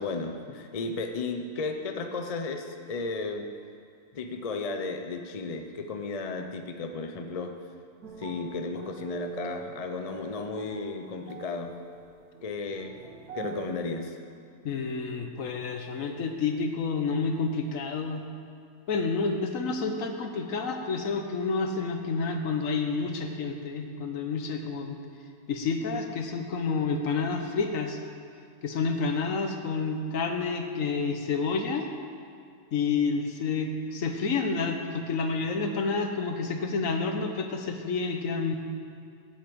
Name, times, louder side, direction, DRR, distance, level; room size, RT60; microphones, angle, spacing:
voice 1, 0.0-3.5 4.1-7.5 8.2-11.7 12.4-13.0 13.3-14.2, left 3 dB, 40° left, 5 dB, 0.5 m, -34 dB
sound 1, 8.0-13.7, right 6 dB, 85° right, 1.5 m, -43 dB
voice 2, 14.6-18.3 18.9-25.0 25.5-28.0 28.6-31.9 32.7-38.5, left 4 dB, 65° left, 5 dB, 1.3 m, -29 dB
8.5 x 7.9 x 7.8 m, 2.3 s
omnidirectional pair, 1.5 m